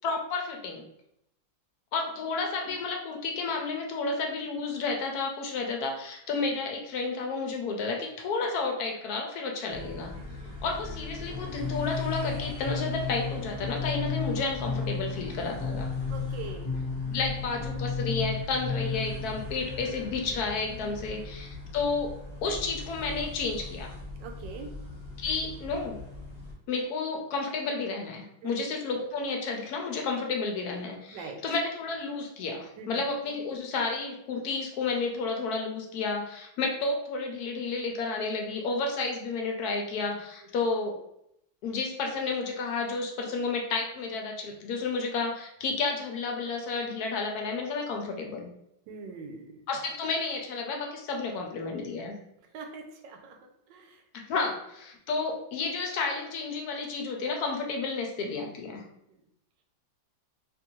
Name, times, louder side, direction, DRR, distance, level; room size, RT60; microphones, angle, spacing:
voice 1, 0.0-0.8 1.9-10.1 10.6-15.9 17.0-22.1 22.4-23.9 25.2-26.0 26.7-41.0 41.6-48.5 49.7-52.1 54.3-58.8, left 4 dB, 70° left, 1 dB, 0.9 m, -31 dB
sound 1, 9.7-26.5, left 2 dB, 30° right, 0.9 m, -41 dB
voice 2, 10.2-10.6 16.0-16.7 20.8-21.2 24.2-24.7 28.4-28.7 31.1-31.4 32.8-33.0 48.9-49.5 52.5-53.4 53.7-54.0, right 4 dB, 75° right, 3 dB, 1.3 m, -42 dB
sound 2, 11.3-19.9, left 5 dB, 30° left, 0.4 m, -33 dB
3.7 x 2.6 x 2.9 m, 0.78 s
omnidirectional pair, 2.0 m